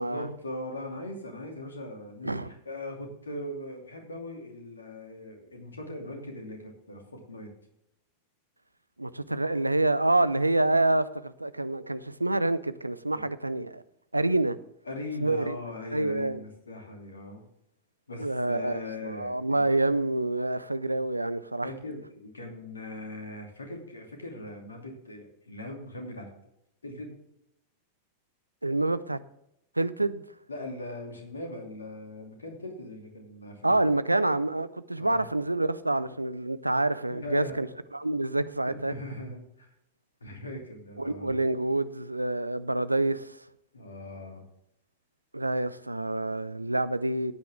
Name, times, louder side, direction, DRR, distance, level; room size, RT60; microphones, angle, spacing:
voice 1, 0.0-7.5 13.1-13.3 14.8-17.4 18.1-19.6 21.6-26.3 26.8-27.2 30.5-33.8 35.0-35.2 37.1-37.6 38.9-39.7 40.2-41.4 43.7-44.4, left 1 dB, 75° left, 2.8 m, -40 dB
voice 2, 9.0-13.8 14.1-14.6 15.2-15.6 15.9-16.4 18.2-18.8 19.2-21.7 28.6-29.2 29.8-30.2 33.6-37.7 37.9-38.9 41.0-43.4 45.3-47.3, right 2 dB, 85° right, 0.5 m, -27 dB
15.0 x 9.2 x 3.6 m
figure-of-eight pair, 90°, 0 cm